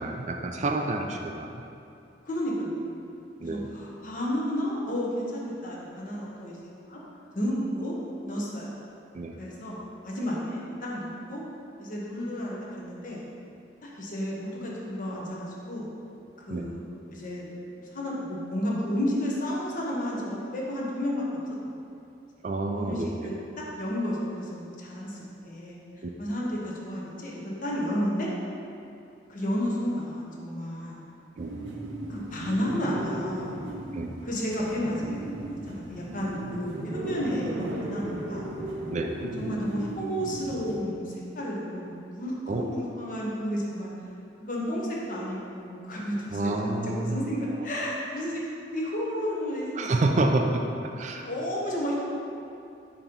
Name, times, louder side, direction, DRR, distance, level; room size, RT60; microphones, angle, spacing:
voice 1, 0.0-1.6 3.4-3.7 9.1-9.3 16.5-16.7 22.4-23.3 31.4-31.5 33.9-34.2 38.9-39.1 42.5-42.6 46.3-47.2 49.8-50.6 51.0-51.3, right 2 dB, 40° right, 3 dB, 0.4 m, -28 dB
voice 2, 2.2-3.1 3.4-7.0 7.3-8.0 8.2-8.7 9.4-11.4 11.8-13.2 13.8-15.9 16.5-21.7 22.7-25.2 25.4-25.8 26.2-28.3 29.3-31.0 32.1-33.6 34.2-35.2 35.5-38.5 39.4-43.9 44.4-46.5 46.8-50.3 51.1-52.0, equal, 45° left, -4 dB, 1.1 m, -32 dB
sound 1, 31.4-40.8, right 1 dB, 85° right, 0.7 m, -36 dB
7.0 x 3.0 x 5.3 m, 2.6 s
head